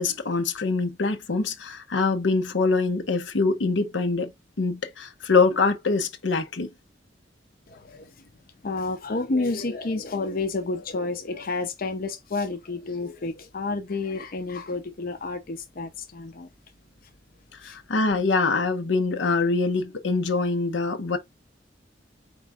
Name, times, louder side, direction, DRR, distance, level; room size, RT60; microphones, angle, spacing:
voice 1, 0.0-4.3 4.6-6.7 17.6-21.2, left 3 dB, 80° left, 0.8 m, -24 dB
voice 2, 7.7-8.1 8.6-16.5 17.6-17.8, left 3 dB, 55° left, 0.7 m, -30 dB
4.5 x 3.1 x 3.5 m
head